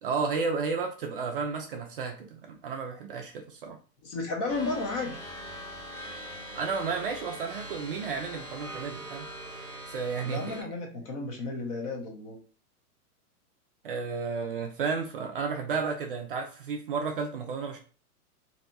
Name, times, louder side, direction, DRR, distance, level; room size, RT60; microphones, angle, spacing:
voice 1, 0.0-3.8 6.5-9.3 9.9-10.7 13.8-17.8, right 5 dB, 40° right, 0.4 m, -32 dB
voice 2, 4.0-5.2 10.2-12.4, left 3 dB, 25° left, 0.5 m, -33 dB
sound 1, 4.5-10.6, equal, 5° left, 0.9 m, -42 dB
3.8 x 2.7 x 2.2 m
hypercardioid pair, 145°, 46 cm